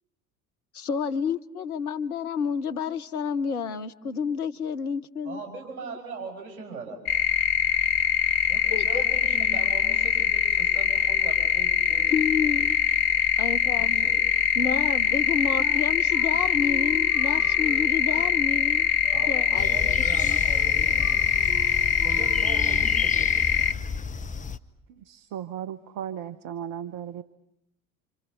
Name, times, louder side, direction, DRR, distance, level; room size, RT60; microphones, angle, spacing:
voice 1, 0.7-5.4 8.7-9.0 12.1-12.8 13.4-14.1 14.5-18.9 19.3-20.4, left 6 dB, 80° left, 10 dB, 1.1 m, -30 dB
voice 2, 5.2-7.0 8.5-12.1 13.6-14.2 19.1-21.2 22.0-23.3, right 4 dB, 65° right, 3 dB, 7.8 m, -40 dB
sound 1, 7.1-23.7, left 10 dB, 50° left, 1.2 m, -23 dB
Wind instrument woodwind instrument, 15.6-23.0, right 1 dB, 10° right, 2.9 m, -43 dB
sound 2, 19.6-24.6, left 5 dB, 15° left, 1.0 m, -33 dB
voice 3, 24.9-27.2, right 9 dB, 45° right, 14 dB, 1.1 m, -36 dB
28.5 x 27.0 x 6.9 m, 0.79 s
figure-of-eight pair, 60°, 44 cm